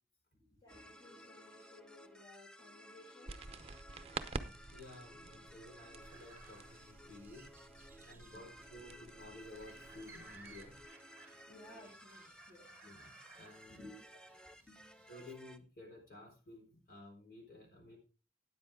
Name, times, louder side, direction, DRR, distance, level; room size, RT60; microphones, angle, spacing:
voice 1, 0.3-3.4 8.1-8.8 11.5-12.7 13.7-14.0 14.5-15.0, left 1 dB, 20° left, -4 dB, 2.7 m, -58 dB
sound 1, 0.7-15.6, equal, 5° left, 0.5 m, -57 dB
sound 2, 3.3-10.9, right 3 dB, 35° right, 0.7 m, -49 dB
voice 2, 4.7-7.5 8.0-10.8 12.8-13.9 15.1-18.0, left 2 dB, 50° left, 0 dB, 4.7 m, -54 dB
sound 3, 6.0-15.3, right 4 dB, 10° right, 1.5 m, -61 dB
13.0 x 9.3 x 3.6 m, 0.34 s
head